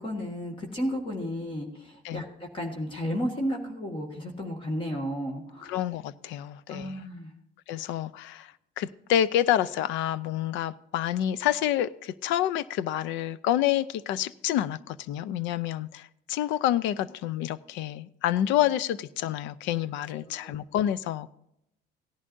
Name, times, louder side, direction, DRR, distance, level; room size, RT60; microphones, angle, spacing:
voice 1, 0.0-5.7 6.7-7.3 7.7-7.8 20.2-20.6, equal, 25° left, 1 dB, 1.7 m, -33 dB
voice 2, 5.6-7.0 7.7-21.3, left 11 dB, 75° left, 18 dB, 0.5 m, -28 dB
17.0 x 11.0 x 2.6 m, 0.79 s
cardioid pair, 130°, 19 cm